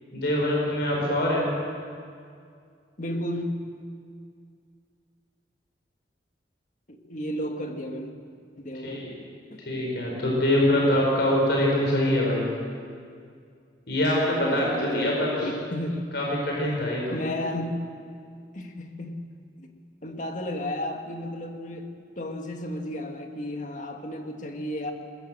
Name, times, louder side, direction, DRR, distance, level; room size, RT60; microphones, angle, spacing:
voice 1, 0.1-1.5 8.8-9.1 9.7-12.5 13.9-15.5 16.1-17.1, left 1 dB, 65° left, -3 dB, 5.2 m, -24 dB
voice 2, 3.0-3.6 6.9-8.1 8.6-9.1 9.5-9.6 14.4-16.1 17.1-17.8 18.5-19.2 19.6-19.7 20.0-24.9, left 1 dB, 45° left, 4 dB, 2.0 m, -33 dB
21.5 x 21.0 x 7.7 m, 2.2 s
head